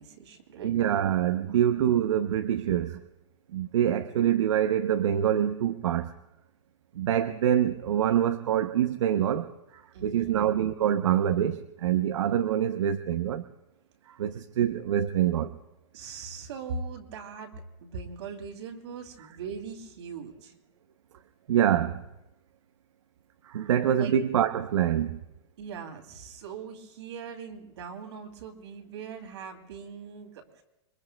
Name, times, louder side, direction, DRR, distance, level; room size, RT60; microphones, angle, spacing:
voice 1, 0.0-0.8 1.5-1.6 9.9-10.4 15.9-20.5 24.0-24.2 25.6-30.6, right 5 dB, 65° right, 2.7 m, -40 dB
voice 2, 0.6-3.0 3.5-6.1 6.9-13.4 14.1-15.5 21.5-22.0 23.4-25.2, right 10 dB, 85° right, 0.7 m, -25 dB
27.5 x 23.0 x 2.2 m
supercardioid pair, 170°, 15 cm